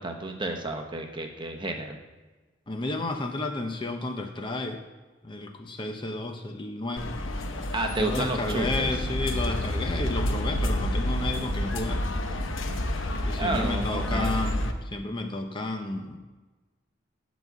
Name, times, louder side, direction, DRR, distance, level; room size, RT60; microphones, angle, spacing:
voice 1, 0.0-2.0 7.7-8.9 13.4-14.5, right 2 dB, 25° right, 3 dB, 1.0 m, -31 dB
voice 2, 2.7-4.8 5.2-7.1 8.0-12.1 13.3-16.2, left 2 dB, 25° left, 5 dB, 0.8 m, -32 dB
sound 1, 7.0-14.7, left 1 dB, 80° left, 0.9 m, -29 dB
12.0 x 4.1 x 8.1 m, 1.2 s
head